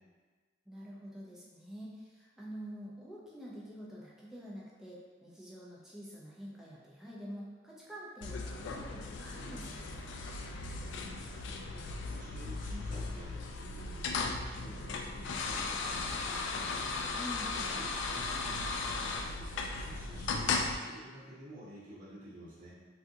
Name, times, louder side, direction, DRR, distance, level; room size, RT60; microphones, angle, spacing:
voice 1, 0.7-10.1 17.1-17.5, equal, 5° right, -6 dB, 0.4 m, -47 dB
sound 1, 8.2-20.7, left 3 dB, 80° left, 0.3 m, -37 dB
voice 2, 11.1-22.7, equal, 45° right, -9 dB, 0.9 m, -51 dB
3.6 x 2.4 x 2.6 m, 1.4 s
head